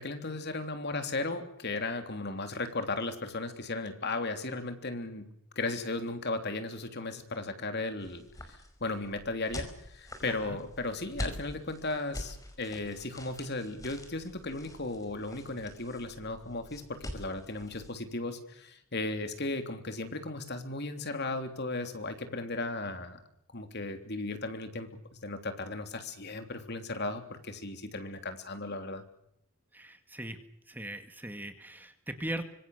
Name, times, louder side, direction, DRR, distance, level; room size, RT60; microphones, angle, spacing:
voice 1, 0.0-5.3 5.5-23.2 23.5-24.9 25.2-29.0, left 2 dB, 50° left, 7 dB, 3.3 m, -36 dB
sound 1, 8.0-18.0, left 1 dB, 15° left, 5.1 m, -45 dB
voice 2, 10.2-10.6 29.7-30.4 30.7-32.4, right 1 dB, 10° right, 8 dB, 1.9 m, -39 dB
25.5 x 23.5 x 6.6 m, 0.76 s
head